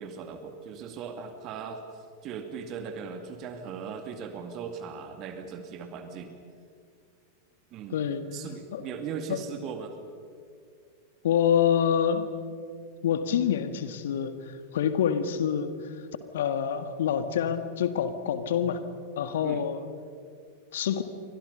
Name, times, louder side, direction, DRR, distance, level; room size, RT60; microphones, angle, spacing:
voice 1, 0.0-1.8 2.2-6.4 7.7-8.0 8.3-9.9 19.4-19.6, right 6 dB, 35° right, 7 dB, 2.3 m, -38 dB
voice 2, 7.9-8.2 8.7-8.8 9.3-9.4 11.2-12.3 13.0-14.4 14.7-15.7 16.3-18.8 19.2-19.8 20.7-21.0, left 8 dB, 60° left, 10 dB, 1.8 m, -26 dB
29.5 x 25.0 x 5.6 m, 2.3 s
figure-of-eight pair, 90°, 0 cm